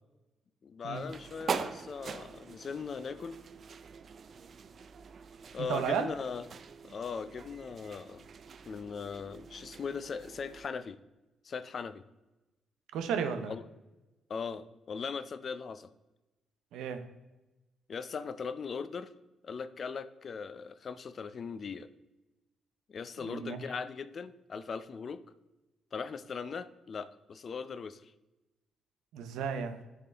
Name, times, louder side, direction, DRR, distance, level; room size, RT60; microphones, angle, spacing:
voice 1, 0.6-3.4 5.5-6.5 6.8-8.3 8.7-11.0 11.4-12.0 13.5-13.6 14.3-15.9 17.9-19.1 19.4-21.9 22.9-25.2 25.9-28.1, left 5 dB, 45° left, 13 dB, 0.4 m, -39 dB
sound 1, 0.9-10.7, right 6 dB, 50° right, 0.4 m, -43 dB
voice 2, 5.6-6.1 12.9-13.5 16.7-17.0 23.2-23.6 29.1-29.8, right 7 dB, 85° right, 9 dB, 0.6 m, -33 dB
10.5 x 3.7 x 3.4 m, 1.0 s
cardioid pair, 90°, 0 cm